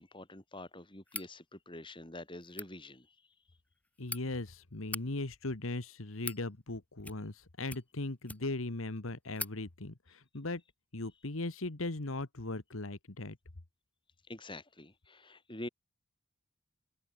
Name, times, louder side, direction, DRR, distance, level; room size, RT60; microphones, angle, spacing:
voice 1, 0.0-3.1 14.3-15.7, left 1 dB, 25° left, 4.2 m, -46 dB
sound 1, 1.1-1.3 2.4-2.7 3.7-4.2 4.8-5.0 5.8-6.4 7.0-7.4 7.7-8.6 9.0-9.1 9.3-9.6, left 3 dB, 5° left, 1.3 m, -42 dB
voice 2, 4.0-10.6 10.9-13.4, left 2 dB, 80° left, 1.6 m, -38 dB
head